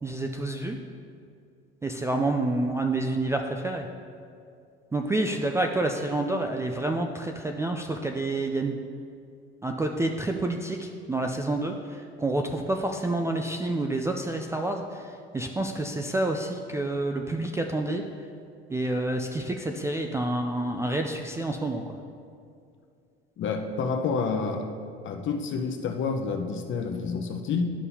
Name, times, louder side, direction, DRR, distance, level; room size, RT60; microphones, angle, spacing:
voice 1, 0.0-0.8 1.8-3.9 4.9-8.8 9.6-18.0 18.7-22.0, right 2 dB, 10° right, 3 dB, 0.4 m, -28 dB
voice 2, 23.4-24.7 25.0-27.6, left 5 dB, 40° left, 4 dB, 0.9 m, -29 dB
11.5 x 5.4 x 2.7 m, 2.4 s
hypercardioid pair, 70°, 30 cm